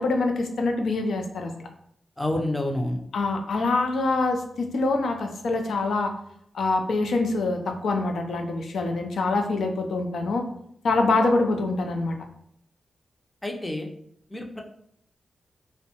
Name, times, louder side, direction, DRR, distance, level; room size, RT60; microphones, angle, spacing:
voice 1, 0.0-1.7 3.1-6.1 6.5-10.5 10.8-12.2, left 3 dB, 80° left, 4 dB, 0.4 m, -25 dB
voice 2, 2.2-3.0 13.4-13.9 14.3-14.6, left 1 dB, 15° left, 2 dB, 0.4 m, -28 dB
2.6 x 2.1 x 2.8 m, 0.69 s
wide cardioid pair, 95°, 0 cm